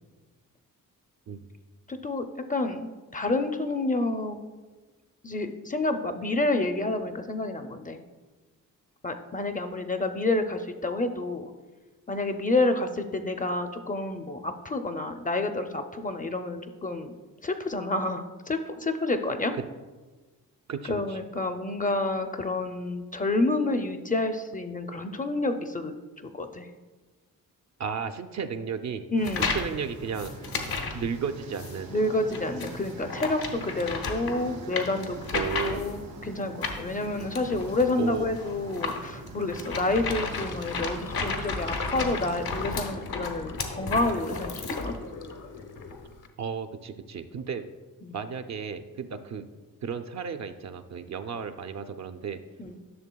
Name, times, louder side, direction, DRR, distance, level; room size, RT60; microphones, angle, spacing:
voice 1, 1.9-2.2 2.5-4.4 5.2-8.0 9.0-11.5 12.1-17.1 17.4-19.5 20.9-25.9 26.3-26.7 29.1-29.5 31.9-44.9 48.0-48.1 52.6-52.8, left 2 dB, 25° left, 7 dB, 0.4 m, -29 dB
voice 2, 20.7-21.2 27.8-29.0 29.4-30.3 30.9-31.9 35.3-35.9 38.0-38.3 46.4-47.7 48.1-49.4 49.8-52.4, right 6 dB, 50° right, 9 dB, 0.5 m, -34 dB
sound 1, 29.2-29.7 30.1-31.0 31.5-31.8 32.3-36.0 36.6-45.0, left 4 dB, 90° left, 1.0 m, -33 dB
sound 2, 29.2-42.7, right 3 dB, 85° right, 2.0 m, -43 dB
Sink (filling or washing), 40.0-46.3, left 4 dB, 60° left, 0.8 m, -42 dB
11.0 x 6.4 x 2.3 m, 1.3 s
cardioid pair, 90°, 35 cm